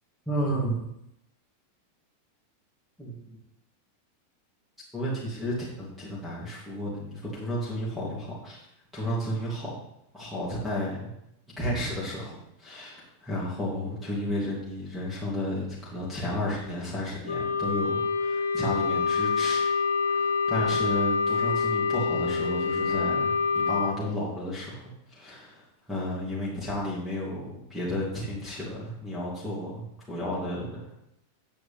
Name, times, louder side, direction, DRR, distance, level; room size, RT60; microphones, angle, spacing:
voice 1, 0.3-0.8 3.0-3.4 4.9-8.6 8.9-9.7 10.1-11.1 11.6-19.7 20.0-24.8 25.1-30.9, equal, ahead, -7 dB, 2.8 m, -32 dB
Wind instrument woodwind instrument, 17.3-23.9, left 5 dB, 70° left, 0.7 m, -26 dB
9.3 x 7.6 x 3.5 m, 0.81 s
figure-of-eight pair, 90°, 0 cm